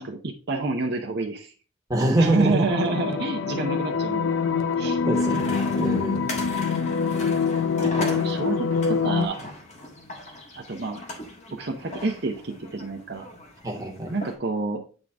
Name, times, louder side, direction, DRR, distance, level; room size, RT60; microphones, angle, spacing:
voice 1, 0.0-1.5 2.2-4.3 4.8-5.0 7.8-9.5 10.6-11.0 11.5-13.3 14.1-14.8, right 3 dB, 55° right, 2 dB, 0.7 m, -28 dB
voice 2, 1.9-2.7 5.1-6.3 13.6-14.2, right 1 dB, 15° right, 0 dB, 1.3 m, -25 dB
sound 1, 2.7-9.3, left 5 dB, 80° left, 0.6 m, -25 dB
sound 2, 5.1-14.3, left 1 dB, 35° left, 1.4 m, -38 dB
8.8 x 3.8 x 3.5 m, 0.38 s
head